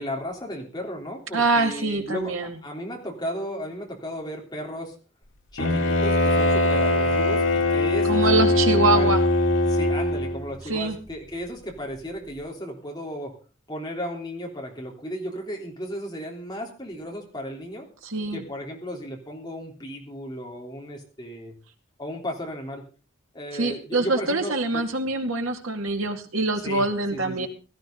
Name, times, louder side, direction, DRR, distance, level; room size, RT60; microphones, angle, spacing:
voice 1, 0.0-4.9 5.5-8.3 8.9-9.1 9.6-13.4 13.7-17.9 18.3-21.5 22.0-22.8 23.3-24.9 26.6-26.9 27.1-27.5, equal, 20° left, 0 dB, 3.5 m, -34 dB
voice 2, 1.3-2.5 8.1-9.2 10.7-11.0 18.0-18.4 23.5-27.5, right 2 dB, 85° right, 4 dB, 2.4 m, -24 dB
Bowed string instrument, 5.6-10.4, left 2 dB, 80° left, 3.1 m, -21 dB
17.5 x 13.5 x 3.9 m, 0.36 s
head